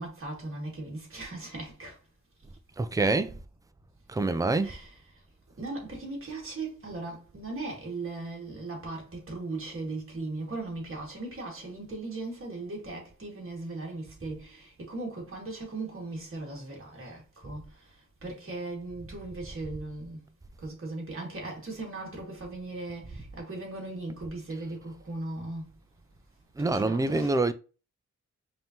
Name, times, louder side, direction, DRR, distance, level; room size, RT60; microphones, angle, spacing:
voice 1, 0.0-2.0 4.6-5.0 5.6-20.2 20.6-25.7 26.6-27.5, right 2 dB, 45° right, 1.9 m, -38 dB
voice 2, 2.8-3.4 4.1-4.7 26.6-27.5, right 3 dB, 10° right, 0.3 m, -26 dB
5.3 x 2.8 x 2.9 m
wide cardioid pair, 120°, 30 cm